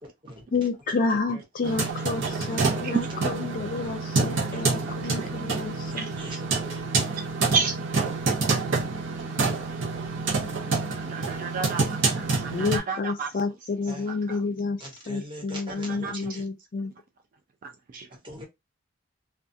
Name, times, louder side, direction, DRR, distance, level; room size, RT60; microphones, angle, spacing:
voice 1, 0.0-0.4 1.3-1.4 2.2-3.2 3.8-3.9 4.3-4.6 5.8-6.8 10.5-10.6 13.9-14.1 14.8-16.4 18.1-18.5, equal, 25° right, 1.1 m, -42 dB
voice 2, 0.5-6.1 12.5-14.8 15.1-16.9, left 4 dB, 45° left, 0.4 m, -30 dB
sound 1, 1.6-12.8, right 3 dB, 65° right, 0.8 m, -27 dB
voice 3, 6.0-6.4 7.5-7.8 9.2-9.3 10.7-13.3 14.3-14.4 15.9-16.4 17.6-18.1, right 5 dB, 45° right, 0.4 m, -31 dB
2.4 x 2.3 x 2.6 m
head